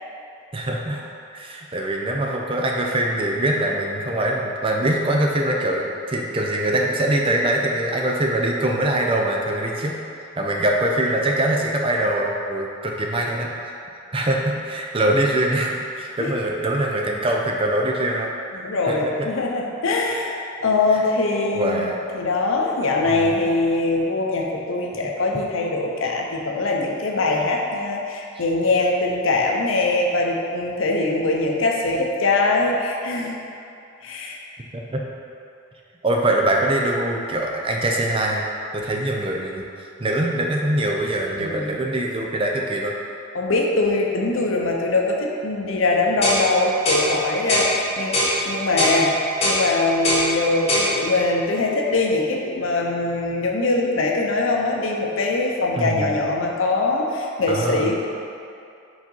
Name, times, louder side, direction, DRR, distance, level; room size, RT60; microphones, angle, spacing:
voice 1, 0.5-1.0 1.3-10.0 10.4-13.5 14.1-18.3 18.9-19.3 20.9-21.0 21.5-22.0 23.1-23.3 25.0-25.1 34.7-35.0 36.0-38.5 38.7-39.7 40.0-42.9 55.8-56.1 57.5-57.9, right 1 dB, 25° right, 0 dB, 0.5 m, -23 dB
voice 2, 18.5-33.3 34.0-34.4 41.4-41.8 43.3-48.2 48.4-58.0, left 2 dB, 80° left, 0 dB, 0.7 m, -22 dB
sound 1, 46.2-46.4 46.8-47.1 47.5-47.7 48.1-48.3 48.8-49.0 49.4-49.6 50.0-50.3 50.7-50.9, left 1 dB, 30° left, 1.3 m, -20 dB
5.0 x 3.9 x 5.4 m, 2.6 s
head